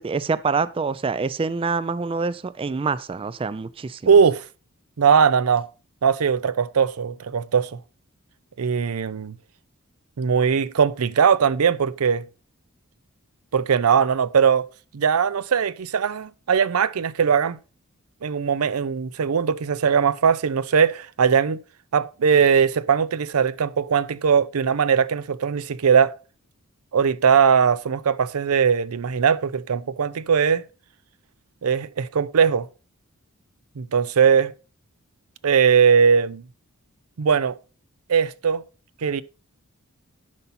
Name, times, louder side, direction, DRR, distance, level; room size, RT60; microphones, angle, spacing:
voice 1, 0.0-4.0, right 4 dB, 25° right, 0.3 m, -26 dB
voice 2, 4.1-4.4 5.0-5.7 6.0-7.8 8.6-9.3 10.2-12.2 13.5-14.7 14.9-17.6 18.2-21.6 21.9-26.1 26.9-30.6 31.6-32.7 33.8-34.5 35.4-36.4 37.2-37.6 38.1-38.6 39.0-39.2, right 6 dB, 85° right, 0.5 m, -20 dB
10.5 x 5.6 x 4.2 m
head